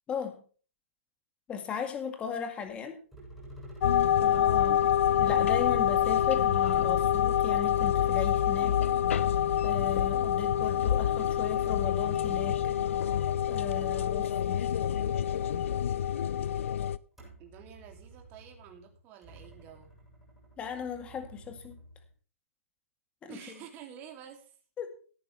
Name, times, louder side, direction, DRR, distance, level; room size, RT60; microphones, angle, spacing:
voice 1, 0.1-0.4 1.5-3.0 4.2-4.8 5.2-8.8 9.6-12.6 13.5-14.6 20.6-21.8 23.2-23.4 24.8-24.9, left 7 dB, 15° left, 6 dB, 1.9 m, -37 dB
sound 1, 2.6-2.8 3.1-4.8 5.6-8.2 8.8-14.0 14.4-16.6 17.1-22.2, right 1 dB, 5° right, 7.5 m, -52 dB
sound 2, 3.8-17.0, left 10 dB, 65° left, 0.6 m, -26 dB
voice 2, 13.9-14.3 17.4-19.9 23.3-24.6, right 8 dB, 25° right, 4 dB, 2.8 m, -49 dB
17.0 x 9.3 x 3.3 m, 0.39 s
hypercardioid pair, 155°, 8 cm